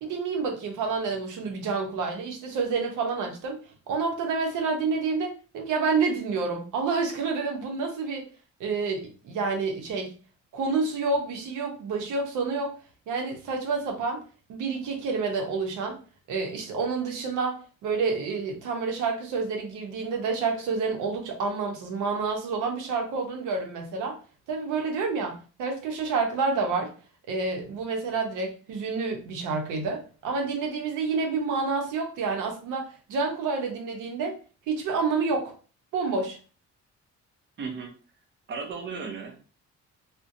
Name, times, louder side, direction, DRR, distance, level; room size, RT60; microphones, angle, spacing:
voice 1, 0.0-3.6 3.9-8.3 8.6-10.1 10.5-12.7 13.1-14.2 14.5-16.0 16.3-24.2 24.5-26.9 27.3-34.4 34.7-35.5 35.9-36.4, right 4 dB, 85° right, 2 dB, 0.7 m, -28 dB
voice 2, 37.6-37.9 38.5-39.4, right 5 dB, 40° right, 4 dB, 0.6 m, -35 dB
2.5 x 2.1 x 2.5 m, 0.36 s
cardioid pair, 90°, 30 cm